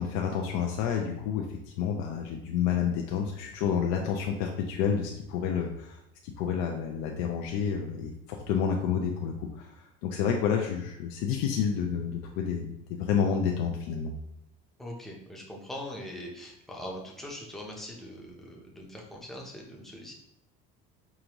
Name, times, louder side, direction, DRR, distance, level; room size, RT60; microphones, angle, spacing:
voice 1, 0.0-14.1, left 7 dB, 70° left, 2 dB, 0.5 m, -29 dB
voice 2, 14.8-20.1, left 1 dB, ahead, -2 dB, 0.6 m, -41 dB
4.8 x 2.5 x 2.9 m, 0.85 s
cardioid pair, 160°, 21 cm